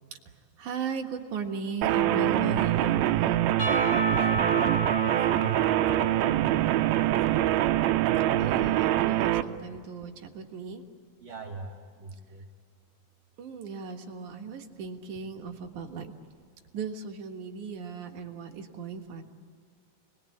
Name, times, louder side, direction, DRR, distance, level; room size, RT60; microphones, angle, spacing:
voice 1, 0.6-3.4 8.4-10.8 13.4-16.1 16.7-19.2, right 5 dB, 60° right, 3 dB, 2.8 m, -37 dB
sound 1, 1.8-9.4, right 13 dB, 85° right, 2.6 m, -24 dB
Percussion / Church bell, 3.6-7.6, equal, 30° left, 3.1 m, -33 dB
voice 2, 4.1-6.1 6.8-7.5 11.2-12.4, right 2 dB, 35° right, -5 dB, 3.1 m, -42 dB
30.0 x 21.0 x 8.6 m, 2.2 s
omnidirectional pair, 4.2 m